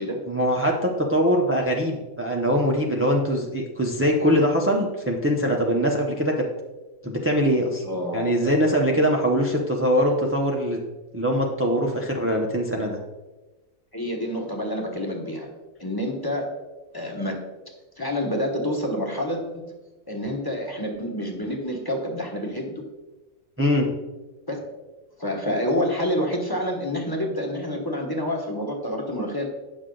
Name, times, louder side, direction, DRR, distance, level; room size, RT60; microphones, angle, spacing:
voice 1, 0.3-6.3 7.0-7.8 8.1-10.8 11.1-13.0 23.6-23.9, equal, 20° right, 0 dB, 0.3 m, -22 dB
voice 2, 7.8-8.3 13.9-15.5 15.8-16.5 16.9-17.4 18.0-19.7 20.1-22.8 24.5-24.6 25.2-29.5, equal, 15° left, 1 dB, 1.0 m, -28 dB
9.3 x 6.4 x 3.8 m, 1.1 s
omnidirectional pair, 1.6 m